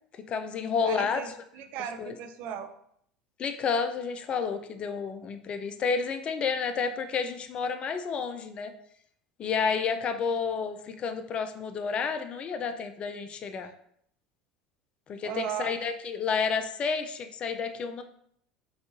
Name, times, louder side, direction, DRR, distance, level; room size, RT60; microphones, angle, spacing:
voice 1, 0.3-1.2 2.0-2.1 3.4-8.7 9.4-13.7 15.1-18.0, left 5 dB, 40° left, 8 dB, 0.4 m, -30 dB
voice 2, 0.8-2.7 15.2-15.7, right 8 dB, 60° right, 8 dB, 0.4 m, -36 dB
5.1 x 2.4 x 2.6 m, 0.69 s
hypercardioid pair, 80°, 3 cm